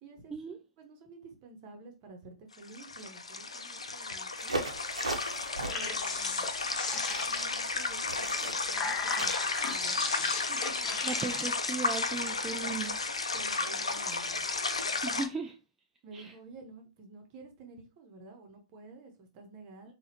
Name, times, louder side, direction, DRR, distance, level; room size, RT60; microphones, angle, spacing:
voice 1, 0.0-0.3 0.8-4.5 5.7-6.5 7.1-9.3 9.6-10.0 10.3-11.4 12.6-12.9 13.3-14.5 16.0-19.9, right 3 dB, 35° right, 1.1 m, -50 dB
sound 1, 2.5-15.3, left 3 dB, 80° left, 0.5 m, -33 dB
sound 2, 4.4-9.9, right 2 dB, 80° right, 0.8 m, -39 dB
sound 3, 5.5-7.7 8.4-11.4, left 4 dB, 25° left, 0.7 m, -37 dB
voice 2, 11.0-12.9 15.0-15.6 16.1-16.3 19.9-20.0, right 4 dB, 15° right, 0.3 m, -37 dB
4.0 x 2.4 x 2.8 m
figure-of-eight pair, 110°, 3 cm